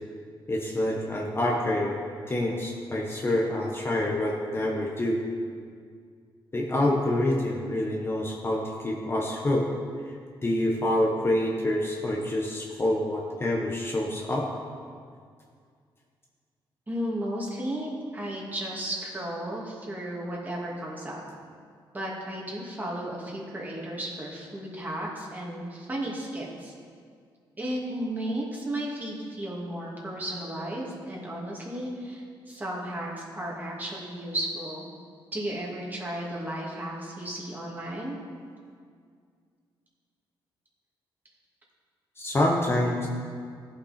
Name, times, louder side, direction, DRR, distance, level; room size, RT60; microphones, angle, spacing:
voice 1, 0.5-2.0 2.3-5.2 6.5-9.7 10.4-14.5 42.2-43.1, left 1 dB, 25° left, -1 dB, 1.0 m, -27 dB
voice 2, 16.9-21.2 21.9-26.7 27.6-34.9 35.3-38.2, right 1 dB, 20° right, -4 dB, 2.3 m, -34 dB
15.0 x 5.7 x 4.3 m, 2.1 s
cardioid pair, 95°, 9 cm